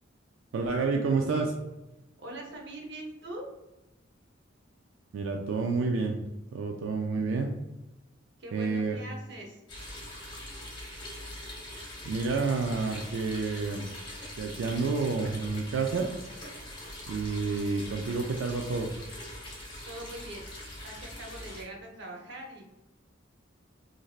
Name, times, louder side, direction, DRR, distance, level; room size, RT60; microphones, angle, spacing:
voice 1, 0.5-1.5 5.1-6.2 6.5-7.5 8.5-9.0 12.0-13.9 14.4-16.1 17.1-18.9, right 4 dB, 90° right, 3 dB, 0.3 m, -29 dB
voice 2, 2.2-3.5 8.4-9.6 19.9-20.4 20.8-22.7, right 1 dB, 65° right, 1 dB, 0.7 m, -42 dB
sound 1, 9.7-21.6, left 1 dB, 25° left, 0.9 m, -43 dB
3.2 x 2.6 x 2.3 m, 0.99 s
head